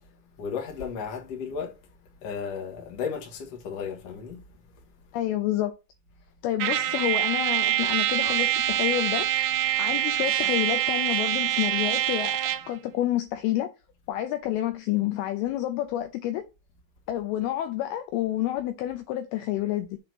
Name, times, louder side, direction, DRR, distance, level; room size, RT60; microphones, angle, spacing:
voice 1, 0.4-1.8 2.2-4.4, left 6 dB, 55° left, 1.8 m, -34 dB
voice 2, 5.1-5.7 6.4-9.3 9.8-12.4 12.7-13.7 14.1-16.4 17.1-20.0, left 13 dB, 85° left, 2.3 m, -28 dB
Trumpet, 6.6-12.7, right 12 dB, 80° right, 2.2 m, -25 dB
7.5 x 2.9 x 6.0 m
omnidirectional pair, 4.9 m